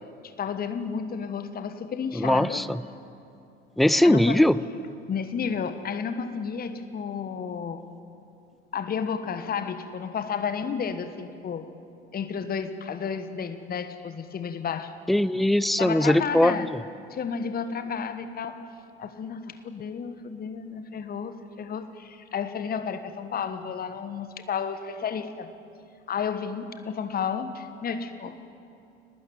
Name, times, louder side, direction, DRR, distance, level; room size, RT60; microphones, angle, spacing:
voice 1, 0.2-2.7 4.0-4.4 5.1-7.8 8.7-11.7 12.1-15.0 15.8-16.7 17.1-18.7 19.0-25.5 26.1-28.4, left 6 dB, 30° left, 10 dB, 1.3 m, -32 dB
voice 2, 2.2-2.8 3.8-4.5 15.1-16.7, left 1 dB, ahead, 18 dB, 0.5 m, -20 dB
23.5 x 19.0 x 9.5 m, 2.6 s
figure-of-eight pair, 65°, 33 cm